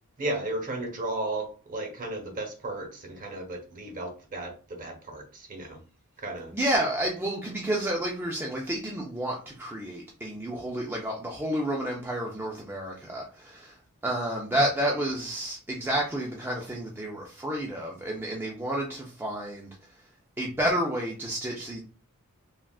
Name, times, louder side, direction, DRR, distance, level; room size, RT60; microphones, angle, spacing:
voice 1, 0.2-5.8 6.2-6.5, right 2 dB, 35° right, 0.7 m, -34 dB
voice 2, 6.5-13.8 14.0-19.7 20.4-21.8, right 1 dB, 10° right, 0.4 m, -30 dB
3.5 x 2.3 x 2.3 m
head